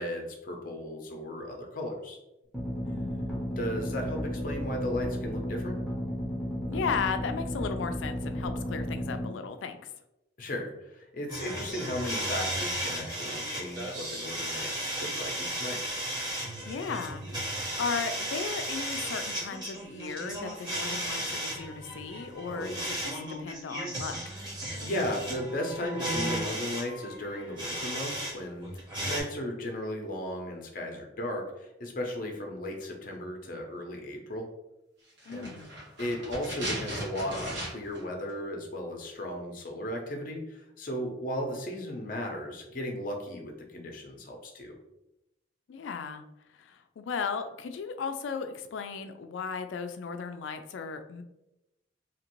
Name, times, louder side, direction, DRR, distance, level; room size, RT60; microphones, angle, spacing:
voice 1, 0.0-2.2 3.5-5.7 10.4-15.8 22.5-22.8 24.8-34.5 35.3-35.5 36.0-44.7, left 1 dB, 50° left, 2 dB, 0.6 m, -36 dB
sound 1, 2.5-9.3, equal, ahead, 0.7 m, -33 dB
voice 2, 2.8-3.4 6.7-9.9 16.7-17.2 17.8-24.2 35.3-35.7 45.7-46.2 46.5-51.2, left 5 dB, 90° left, 8 dB, 0.3 m, -36 dB
sound 2, 11.3-28.3 28.6-29.2, right 1 dB, 25° right, 0.9 m, -35 dB
sound 3, 35.2-38.0 38.3-38.4, right 1 dB, 75° right, 1.3 m, -37 dB
2.8 x 2.5 x 3.0 m, 0.90 s
head